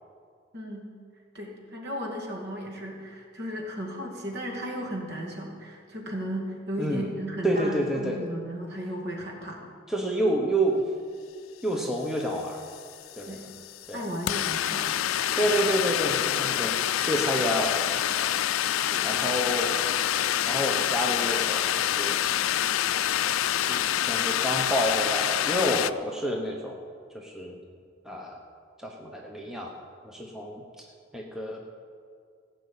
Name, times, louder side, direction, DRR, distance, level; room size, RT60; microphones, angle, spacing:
voice 1, 0.5-0.9 1.3-9.6 13.3-13.5 13.9-14.9 18.7-19.1, equal, 55° right, 0 dB, 2.4 m, -35 dB
voice 2, 7.4-8.2 9.9-10.9 11.6-12.6 13.2-13.5 13.9-14.0 15.3-16.8 17.1-17.9 19.0-19.8 20.5-22.2 23.7-26.8 27.1-27.6 28.0-28.4 28.8-29.7 30.0-30.8 31.1-31.6, equal, ahead, -1 dB, 1.0 m, -29 dB
sound 1, 12.2-12.3 12.5-25.9, left 11 dB, 90° left, 0.4 m, -27 dB
16.5 x 6.2 x 8.6 m, 2.2 s
head